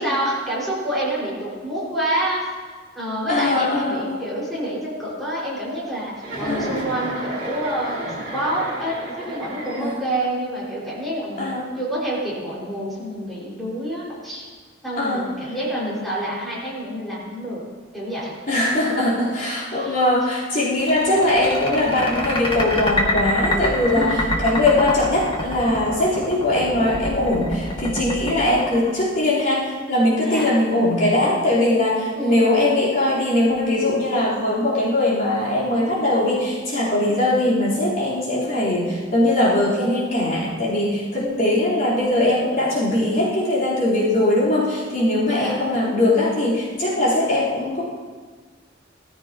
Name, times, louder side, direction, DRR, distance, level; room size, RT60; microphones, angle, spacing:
voice 1, 0.0-2.5 2.9-8.0 8.3-11.5 11.8-14.5 14.8-17.6 17.9-18.4 19.7-20.0 21.5-21.6 23.9-24.2 30.2-30.6 32.1-32.5 41.1-41.7 45.3-45.7, right 1 dB, ahead, -7 dB, 5.6 m, -27 dB
voice 2, 3.3-4.2 6.5-6.8 9.8-10.0 11.4-11.6 15.0-15.3 18.5-47.8, left 1 dB, 50° left, -9 dB, 4.2 m, -21 dB
Chuckle chortle, 6.2-10.2, right 1 dB, 60° right, 5.3 m, -32 dB
sound 1, 20.7-29.4, left 1 dB, 30° left, 2.2 m, -26 dB
20.0 x 14.5 x 3.0 m, 1.4 s
head